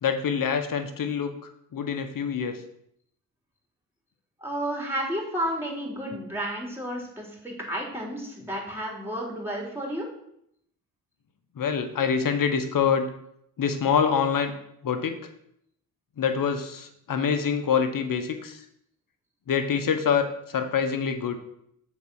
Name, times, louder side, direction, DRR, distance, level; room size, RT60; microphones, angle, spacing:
voice 1, 0.0-2.6 11.6-13.1 13.6-14.5 14.8-15.2 16.2-18.6 19.5-21.4, left 6 dB, 55° left, 8 dB, 1.2 m, -25 dB
voice 2, 4.4-10.1, equal, 5° right, -1 dB, 3.6 m, -32 dB
7.1 x 4.4 x 6.3 m, 0.73 s
supercardioid pair, 50°, 39 cm